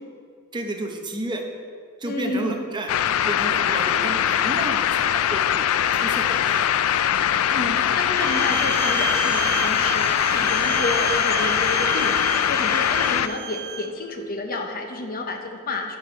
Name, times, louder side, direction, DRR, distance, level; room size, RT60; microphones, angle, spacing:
voice 1, 0.5-1.4 2.0-2.9 3.3-5.7 6.0-7.1, right 2 dB, 20° right, 3 dB, 0.8 m, -32 dB
voice 2, 2.0-2.6 7.5-16.0, left 2 dB, 45° left, 4 dB, 0.9 m, -30 dB
sound 1, 2.9-13.3, left 10 dB, 70° left, 0.3 m, -22 dB
Bowed string instrument, 8.1-13.9, right 8 dB, 50° right, 0.7 m, -31 dB
10.5 x 4.5 x 5.6 m, 2.2 s
head